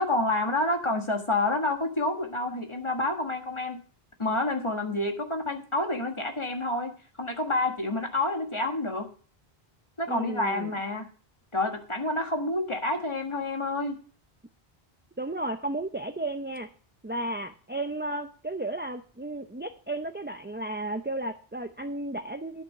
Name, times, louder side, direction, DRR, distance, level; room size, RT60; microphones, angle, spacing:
voice 1, 0.0-3.8 4.2-9.1 10.0-11.1 11.5-14.0, left 2 dB, 30° left, 3 dB, 1.6 m, -28 dB
voice 2, 10.1-10.7 15.2-16.7 17.0-22.6, right 2 dB, 15° right, 6 dB, 0.5 m, -33 dB
11.5 x 5.9 x 6.5 m, 0.40 s
omnidirectional pair, 1.0 m